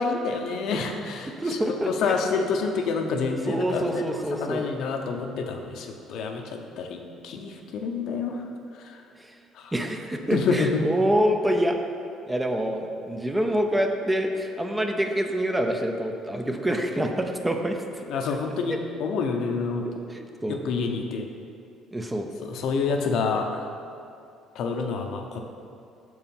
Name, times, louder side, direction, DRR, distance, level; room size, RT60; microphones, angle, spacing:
voice 1, 0.0-1.6 1.8-8.5 8.8-9.0 9.5-9.7 10.3-10.8 18.1-19.9 20.5-21.3 22.4-23.7 24.5-25.4, left 4 dB, 70° left, 3 dB, 0.7 m, -28 dB
voice 2, 1.4-2.2 3.5-4.6 9.2-9.4 9.7-11.8 12.3-18.1 20.1-20.6 21.9-22.3, equal, 10° right, 4 dB, 0.5 m, -26 dB
6.3 x 4.8 x 5.3 m, 2.5 s
cardioid pair, 120°, 0 cm